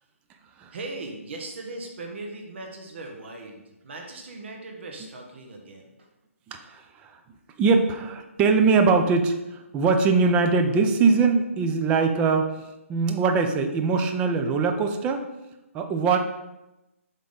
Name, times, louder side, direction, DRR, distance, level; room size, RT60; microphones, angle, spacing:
voice 1, 0.7-6.1, right 2 dB, 50° right, 2 dB, 1.5 m, -39 dB
voice 2, 6.5-7.2 7.6-12.6 12.9-15.3 15.7-16.2, right 4 dB, 15° right, 5 dB, 0.5 m, -22 dB
7.5 x 3.7 x 4.0 m, 0.96 s
figure-of-eight pair, 145°, 8 cm